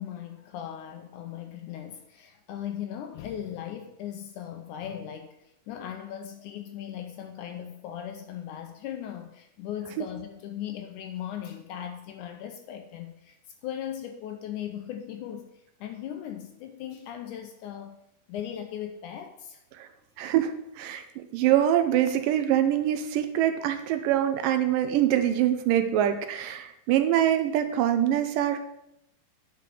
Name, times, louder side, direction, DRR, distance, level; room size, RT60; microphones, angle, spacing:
voice 1, 0.0-18.0 18.3-19.6, left 10 dB, 75° left, 6 dB, 1.9 m, -38 dB
voice 2, 20.2-28.6, right 11 dB, 80° right, 8 dB, 2.3 m, -24 dB
9.2 x 5.2 x 6.8 m, 0.84 s
omnidirectional pair, 4.0 m